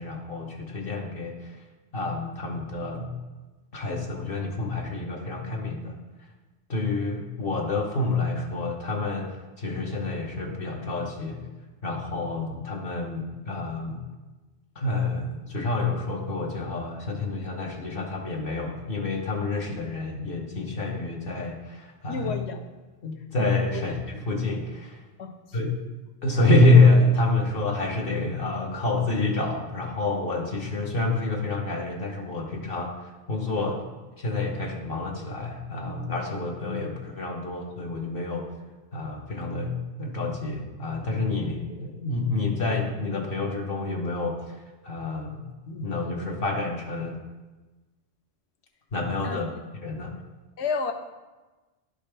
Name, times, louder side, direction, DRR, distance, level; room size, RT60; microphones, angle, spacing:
voice 1, 0.0-1.6 1.9-3.1 3.7-6.0 6.7-9.3 9.6-11.4 11.8-14.0 14.8-22.3 23.0-25.0 25.5-25.8 26.2-33.8 34.2-38.4 38.9-44.6 44.8-47.2 48.9-49.5 49.8-50.1, left 2 dB, 55° left, 0 dB, 1.0 m, -27 dB
voice 2, 22.1-22.6 23.4-23.8 25.2-25.4 49.2-49.4 50.6-50.9, left 5 dB, 75° left, 6 dB, 1.0 m, -31 dB
11.0 x 5.1 x 3.3 m, 1.2 s
omnidirectional pair, 1.2 m